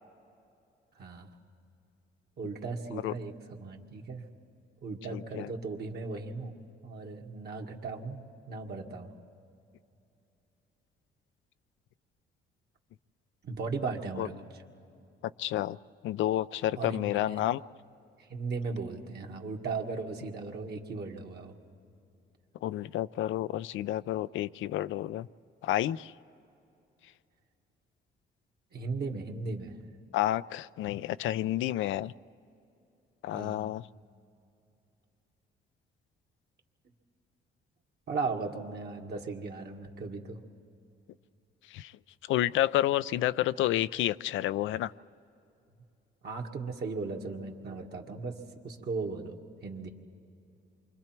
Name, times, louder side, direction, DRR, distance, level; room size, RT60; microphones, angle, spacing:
voice 1, 1.0-1.3 2.4-4.2 4.8-6.6 6.8-9.1 13.4-14.4 16.8-17.5 18.3-21.6 28.7-29.7 33.3-33.7 38.1-40.4 46.2-48.4 48.6-49.3 49.6-49.9, right 4 dB, 55° right, 1 dB, 2.1 m, -37 dB
voice 2, 5.1-5.5 14.2-14.3 15.4-15.8 16.0-17.6 22.6-25.3 25.6-26.1 30.1-32.1 33.2-33.8 41.7-41.9 42.3-44.9, left 13 dB, 80° left, 16 dB, 0.4 m, -30 dB
28.5 x 24.5 x 4.5 m, 2.6 s
cardioid pair, 90°, 20 cm